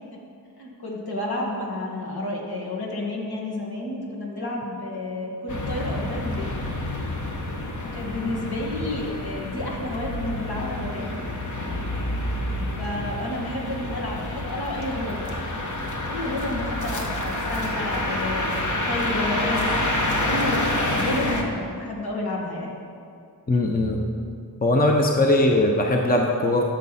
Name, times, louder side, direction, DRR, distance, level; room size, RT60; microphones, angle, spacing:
voice 1, 0.6-6.5 7.9-11.2 12.8-15.3 16.1-19.8 20.2-22.8, left 1 dB, 65° left, -3 dB, 2.0 m, -30 dB
sound 1, 5.5-21.4, left 1 dB, 45° left, 1.2 m, -28 dB
voice 2, 23.5-24.0 24.6-26.6, left 1 dB, 20° left, 1 dB, 0.8 m, -20 dB
13.0 x 6.4 x 4.2 m, 2.4 s
wide cardioid pair, 80°, 40 cm